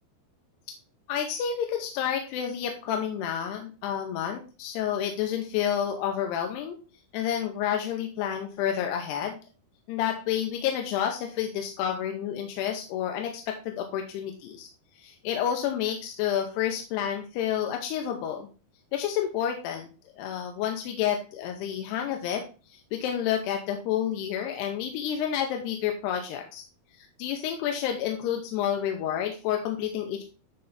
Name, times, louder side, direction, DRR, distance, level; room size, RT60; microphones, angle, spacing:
voice 1, 1.1-6.8 7.1-9.4 9.9-14.7 15.0-18.5 18.9-26.6 27.0-30.2, left 9 dB, 85° left, 3 dB, 2.9 m, -30 dB
9.6 x 3.3 x 4.0 m, 0.34 s
omnidirectional pair, 4.8 m